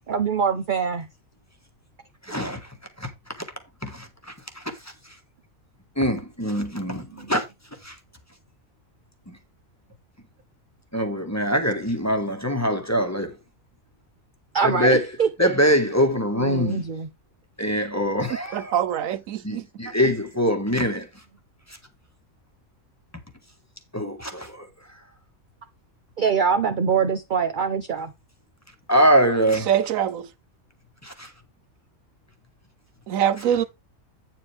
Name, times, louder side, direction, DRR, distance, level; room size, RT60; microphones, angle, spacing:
voice 1, 0.1-1.1 7.1-7.2 14.5-15.5 16.4-17.1 26.2-28.1, right 6 dB, 45° right, 0.7 m, -23 dB
voice 2, 2.2-2.7 3.0-3.1 3.8-4.9 6.0-7.4 7.8-7.9 9.3-9.4 10.9-13.4 14.6-15.0 15.4-16.8 17.6-18.7 19.4-21.1 23.9-24.7 28.9-29.7 31.0-31.3, equal, 10° left, 1.4 m, -23 dB
voice 3, 18.5-19.6 29.7-30.3 33.1-33.6, right 9 dB, 80° right, 1.1 m, -23 dB
8.8 x 7.6 x 3.4 m
omnidirectional pair, 1.4 m